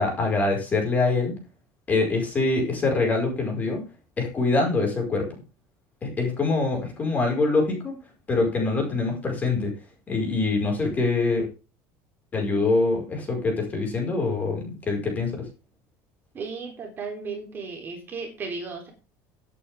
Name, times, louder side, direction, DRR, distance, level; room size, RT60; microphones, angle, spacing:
voice 1, 0.0-1.3 1.9-3.8 4.2-5.3 6.0-7.9 8.3-9.7 10.1-11.5 12.3-15.3, left 3 dB, 20° left, 1 dB, 5.2 m, -24 dB
voice 2, 16.3-18.9, right 4 dB, 30° right, 2 dB, 3.4 m, -35 dB
17.0 x 8.6 x 3.6 m, 0.32 s
cardioid pair, 155°, 8 cm